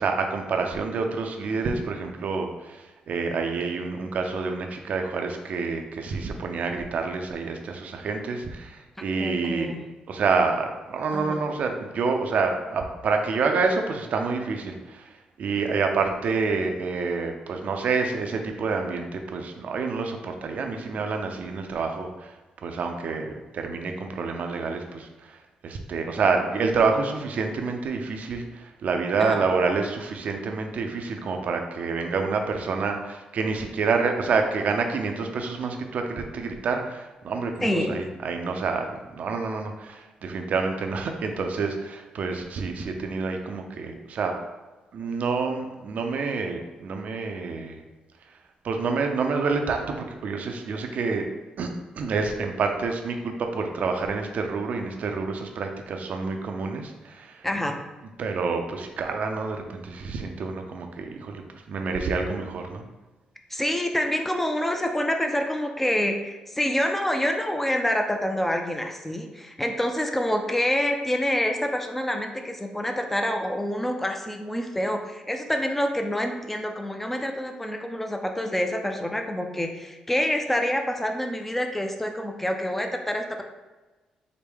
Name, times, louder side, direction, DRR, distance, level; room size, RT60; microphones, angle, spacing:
voice 1, 0.0-9.7 10.1-22.3 22.6-25.4 25.6-44.3 44.9-47.8 48.6-51.3 51.6-51.7 51.9-57.5 58.2-61.4 61.7-62.8, right 4 dB, 65° right, 4 dB, 0.5 m, -28 dB
voice 2, 9.2-9.8 11.1-11.4 29.2-29.4 37.6-38.0 57.4-57.8 63.5-83.4, left 1 dB, 10° left, 4 dB, 0.5 m, -27 dB
4.8 x 2.2 x 3.5 m, 1.2 s
cardioid pair, 70°, 3 cm